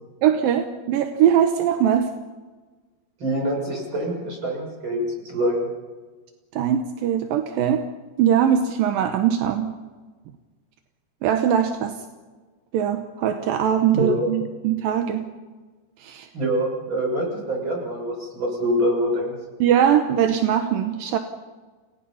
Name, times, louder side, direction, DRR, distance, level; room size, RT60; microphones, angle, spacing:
voice 1, 0.2-2.1 6.5-7.8 8.2-9.7 11.2-12.0 12.7-15.3 16.0-16.3 19.6-21.2, right 9 dB, 70° right, 6 dB, 2.2 m, -21 dB
voice 2, 3.2-5.7 13.9-14.3 16.3-19.4, equal, 25° right, 0 dB, 7.3 m, -25 dB
29.5 x 19.0 x 5.7 m, 1.3 s
omnidirectional pair, 5.2 m